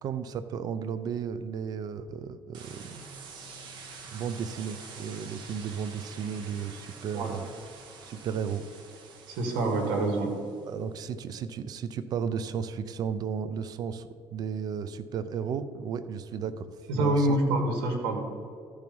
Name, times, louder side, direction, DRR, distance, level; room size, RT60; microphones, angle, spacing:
voice 1, 0.0-3.0 4.1-7.5 8.0-8.6 10.6-16.7 16.9-17.4, right 7 dB, 50° right, 12 dB, 0.5 m, -34 dB
sound 1, 2.5-10.8, right 4 dB, 65° right, 1.4 m, -47 dB
voice 2, 9.3-10.3 16.9-18.2, right 2 dB, 90° right, 3 dB, 1.8 m, -26 dB
13.5 x 4.8 x 5.3 m, 2.4 s
cardioid pair, 120°, 8 cm